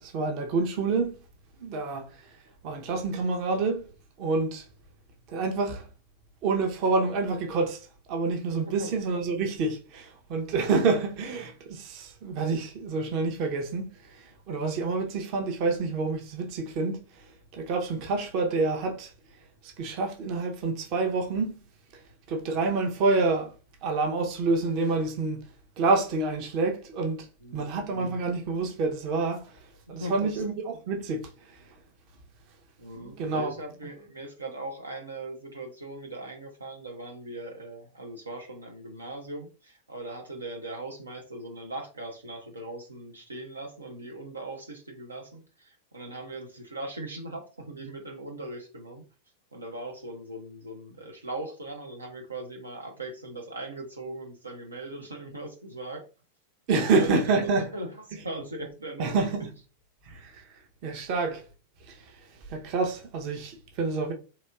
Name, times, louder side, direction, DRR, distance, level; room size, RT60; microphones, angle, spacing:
voice 1, 0.0-1.2 1.6-2.4 2.6-3.9 4.2-4.7 5.3-5.9 6.4-19.1 19.6-21.6 21.9-22.0 22.3-23.5 23.8-25.5 25.8-31.8 32.9-33.5 56.7-57.7 59.0-59.5 60.0-61.4 61.8-64.1, right 3 dB, 45° right, 0.8 m, -28 dB
voice 2, 27.4-27.8 30.0-30.4 32.8-49.0 49.5-56.1 56.7-59.2, right 2 dB, 80° right, 0.6 m, -39 dB
4.1 x 2.8 x 2.3 m
figure-of-eight pair, 90°, 0 cm